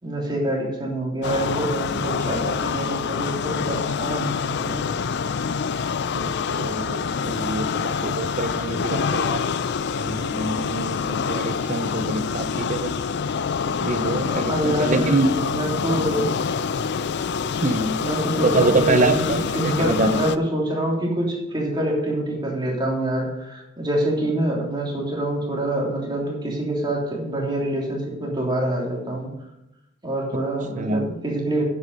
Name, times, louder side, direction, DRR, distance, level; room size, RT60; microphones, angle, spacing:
voice 1, 0.0-4.9 14.4-16.3 18.0-29.3 30.0-31.6, right 1 dB, 25° right, -2 dB, 3.2 m, -26 dB
sound 1, 1.2-20.4, left 6 dB, 60° left, 0.5 m, -26 dB
voice 2, 6.1-9.4 10.0-12.9 13.8-15.3 17.6-18.0 18.4-20.2 30.7-31.1, right 3 dB, 40° right, 10 dB, 0.7 m, -25 dB
9.9 x 8.2 x 5.4 m, 0.87 s
head